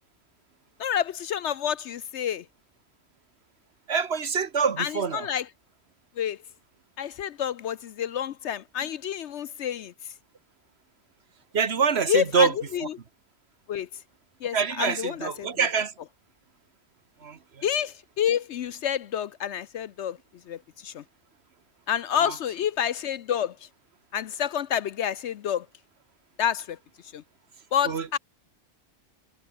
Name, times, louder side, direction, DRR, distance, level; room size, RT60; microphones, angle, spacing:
voice 1, 0.8-2.4 4.8-5.5 6.2-6.4 7.0-9.9 12.1-13.0 13.7-13.9 14.4-15.7 17.6-20.2 20.5-21.0 21.9-23.6 24.1-25.7 26.4-26.8 27.1-27.2 27.7-28.2, left 9 dB, 65° left, 0.8 m, -29 dB
voice 2, 3.9-5.2 11.5-12.5 14.5-15.9 17.2-17.4 22.2-22.3 27.9-28.0, right 6 dB, 55° right, 1.4 m, -25 dB
omnidirectional pair, 1.4 m